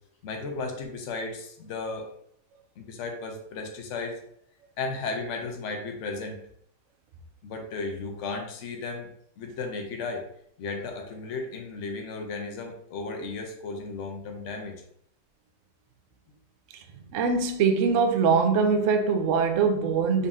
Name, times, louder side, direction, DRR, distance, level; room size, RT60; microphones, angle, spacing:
voice 1, 0.2-2.1 2.8-4.2 4.8-6.4 7.4-9.1 9.4-10.2 10.6-14.8, left 3 dB, 55° left, 3 dB, 0.9 m, -34 dB
voice 2, 17.1-20.3, right 5 dB, 70° right, 5 dB, 0.7 m, -23 dB
4.1 x 2.6 x 3.5 m, 0.69 s
omnidirectional pair, 1.8 m